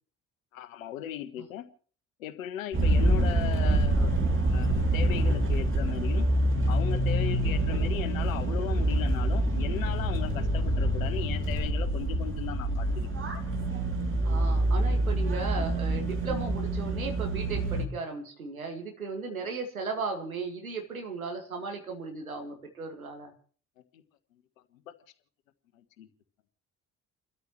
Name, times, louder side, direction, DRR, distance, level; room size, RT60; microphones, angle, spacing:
voice 1, 0.5-1.7 2.2-6.3 6.7-13.1 23.9-24.0 24.9-25.0 25.7-26.1, left 11 dB, 75° left, 11 dB, 1.4 m, -37 dB
sound 1, 2.7-17.9, right 1 dB, 30° right, 3.1 m, -26 dB
voice 2, 14.2-23.3, right 4 dB, 85° right, 3 dB, 2.1 m, -36 dB
30.0 x 13.0 x 3.1 m, 0.43 s
figure-of-eight pair, 50°, 41 cm